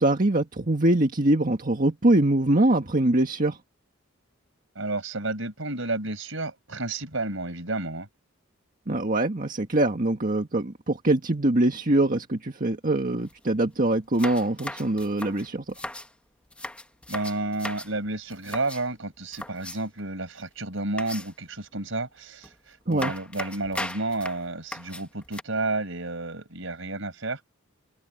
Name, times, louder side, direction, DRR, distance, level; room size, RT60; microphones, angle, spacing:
voice 1, 0.0-3.6 8.9-15.7 22.9-23.1, right 1 dB, 40° right, 1.7 m, -23 dB
voice 2, 4.8-8.1 17.1-27.4, right 2 dB, 70° right, 5.4 m, -31 dB
sound 1, 13.2-13.3 13.6-13.7 14.1-16.1 16.5-17.9 18.3-18.9 19.3-20.0 21.0-21.5 22.4-22.5 22.9-25.4, left 1 dB, 5° left, 1.2 m, -37 dB
open air
head